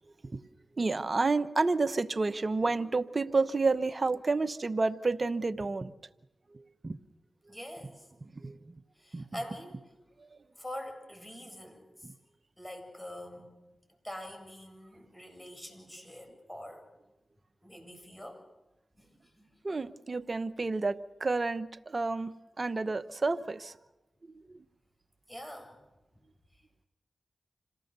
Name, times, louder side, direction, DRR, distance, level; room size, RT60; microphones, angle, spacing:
voice 1, 0.8-5.9 6.5-7.0 7.5-7.6 8.2-8.7 9.1-9.2 10.2-10.3 12.0-12.1 19.6-23.8 24.2-24.6, right 3 dB, 45° right, 12 dB, 1.0 m, -30 dB
voice 2, 7.5-8.1 8.9-9.8 10.6-12.1 12.6-13.5 14.0-16.8 17.6-18.4 18.9-19.5 25.3-25.8 26.5-26.6, left 1 dB, 10° left, 4 dB, 7.9 m, -45 dB
26.5 x 18.5 x 6.9 m, 0.99 s
cardioid pair, 45°, 0 cm